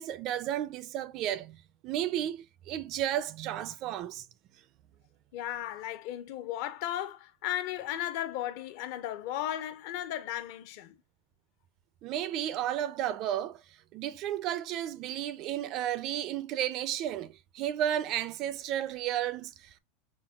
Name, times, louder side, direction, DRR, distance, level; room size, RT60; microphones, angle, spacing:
voice 1, 0.0-4.3 12.0-13.6 13.9-19.8, right 11 dB, 35° right, 0.3 m, -33 dB
voice 2, 5.3-10.9, left 12 dB, 50° left, 0.6 m, -35 dB
5.8 x 2.2 x 2.2 m
supercardioid pair, 170°, 0 cm